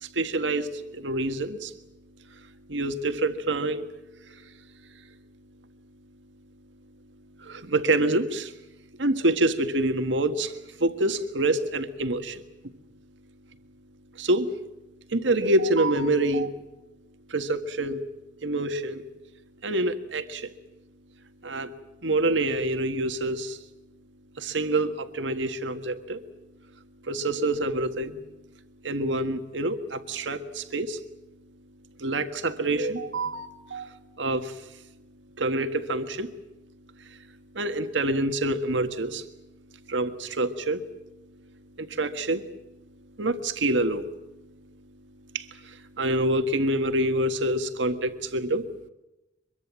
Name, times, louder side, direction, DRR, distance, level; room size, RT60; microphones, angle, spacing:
voice 1, 0.0-1.7 2.7-3.9 4.2-4.4 7.4-8.5 9.0-12.4 14.2-14.5 15.1-16.6 17.3-18.0 18.4-19.1 19.6-20.5 21.4-21.7 22.0-23.6 24.4-26.2 27.1-28.2 28.8-31.0 32.0-34.6 35.4-36.3 37.5-39.3 39.9-40.9 41.8-42.5 43.2-44.1 45.3-48.7, right 2 dB, 90° right, 9 dB, 1.6 m, -26 dB
24.0 x 23.0 x 7.5 m, 0.97 s
head